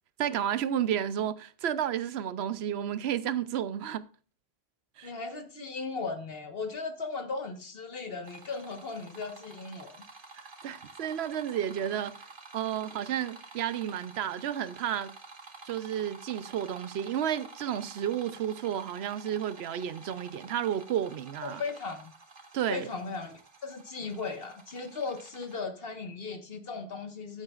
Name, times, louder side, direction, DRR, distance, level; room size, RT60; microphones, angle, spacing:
voice 1, 0.2-4.0 5.0-5.1 10.6-12.2 12.5-15.1 15.7-21.6 22.5-22.9, right 10 dB, 85° right, 0.9 m, -32 dB
voice 2, 5.0-10.0 21.4-22.1 22.7-23.3 23.6-27.4, left 4 dB, 65° left, 1.6 m, -37 dB
sound 1, 8.2-25.6, right 3 dB, 55° right, 1.6 m, -50 dB
14.5 x 8.0 x 2.4 m
omnidirectional pair, 1.1 m